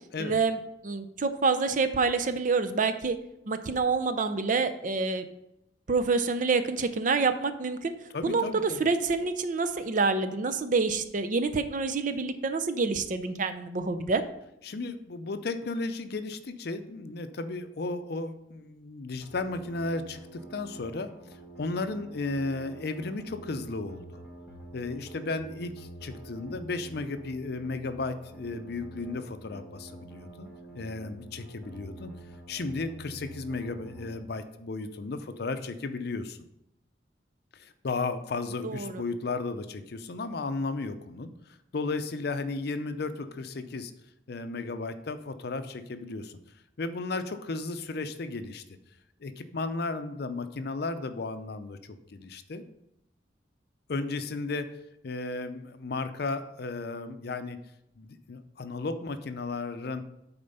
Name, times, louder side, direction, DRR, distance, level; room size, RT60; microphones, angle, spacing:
voice 1, 0.2-0.6 0.8-3.2 3.5-5.2 5.9-7.9 8.2-14.2 38.6-39.0, right 4 dB, 45° right, 9 dB, 0.5 m, -27 dB
voice 2, 8.1-8.8 14.6-24.2 24.7-30.5 30.7-32.1 32.5-36.4 37.5-41.3 41.7-43.9 44.3-46.4 46.8-48.6 49.2-51.8 52.1-52.6 53.9-54.7 55.0-57.6 58.0-60.0, left 3 dB, 60° left, 10 dB, 0.5 m, -34 dB
sound 1, 19.2-34.2, right 2 dB, 10° right, 1.7 m, -47 dB
8.7 x 4.4 x 5.5 m, 0.85 s
head